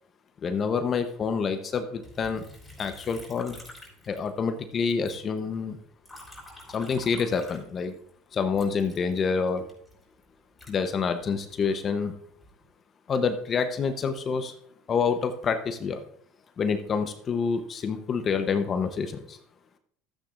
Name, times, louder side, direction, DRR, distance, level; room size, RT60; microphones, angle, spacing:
voice 1, 0.4-2.4 2.8-3.6 4.1-5.8 6.7-7.9 8.3-9.7 10.7-12.2 13.1-14.5 14.9-16.0 16.6-19.4, left 5 dB, 35° left, 8 dB, 0.8 m, -27 dB
Liquid, 2.0-4.6 4.9-8.1 8.5-11.6 12.1-12.7, left 1 dB, 10° left, 3.7 m, -49 dB
13.0 x 8.7 x 2.5 m, 0.65 s
supercardioid pair, 95°, 0 cm